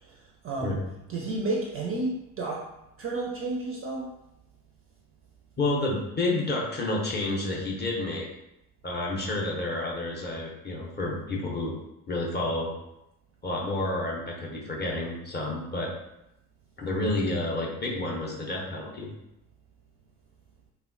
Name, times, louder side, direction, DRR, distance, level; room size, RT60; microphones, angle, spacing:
voice 1, 0.4-0.8 1.1-2.6 3.0-4.1, right 2 dB, 30° right, -2 dB, 0.4 m, -31 dB
voice 2, 5.6-8.3 8.8-11.7 12.1-12.7 13.4-15.9 16.8-19.1, left 2 dB, 25° left, -3 dB, 0.6 m, -30 dB
2.7 x 2.1 x 2.5 m, 0.88 s
figure-of-eight pair, 45°, 45 cm